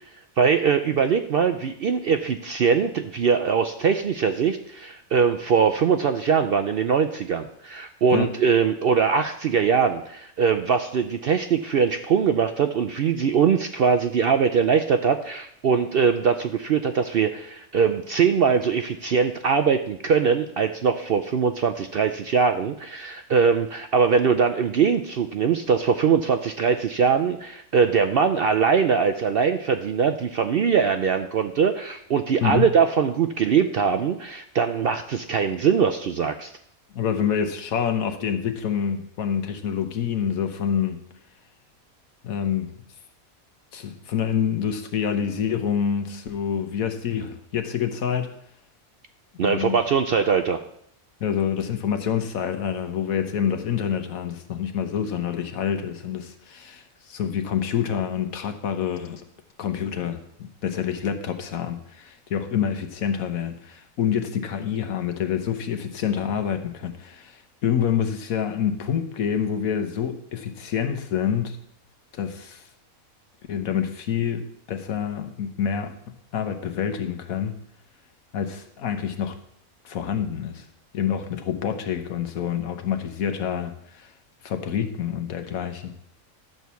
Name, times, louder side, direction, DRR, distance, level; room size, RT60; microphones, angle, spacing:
voice 1, 0.4-36.5 49.4-50.6, right 6 dB, 65° right, 7 dB, 0.6 m, -22 dB
voice 2, 32.4-32.7 36.9-41.0 42.2-42.8 43.7-48.3 49.3-49.8 51.2-59.2 59.6-71.6 72.1-72.7 73.5-76.0 76.3-77.6 78.3-79.4 79.8-80.7 80.9-84.1 84.4-85.9, left 8 dB, 80° left, 7 dB, 1.4 m, -27 dB
12.0 x 4.6 x 6.9 m, 0.73 s
omnidirectional pair, 1.5 m